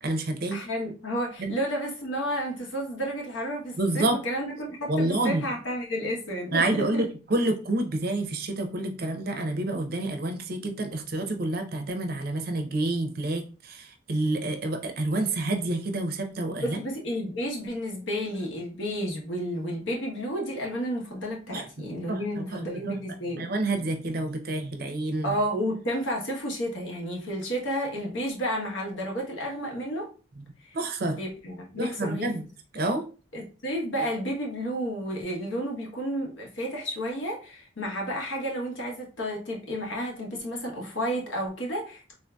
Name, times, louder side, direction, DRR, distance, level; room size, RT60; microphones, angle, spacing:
voice 1, 0.0-0.6 1.4-1.5 3.8-4.2 4.9-5.4 6.5-16.8 21.5-23.0 23.4-25.3 30.4-30.5 30.7-31.2 31.8-32.5 32.7-33.0, right 2 dB, 50° right, 0.5 m, -28 dB
voice 2, 0.5-7.0 16.6-23.5 25.2-30.1 30.6-30.7 31.0-32.3 33.3-42.0, equal, 75° left, 1.0 m, -31 dB
3.6 x 2.6 x 2.2 m
head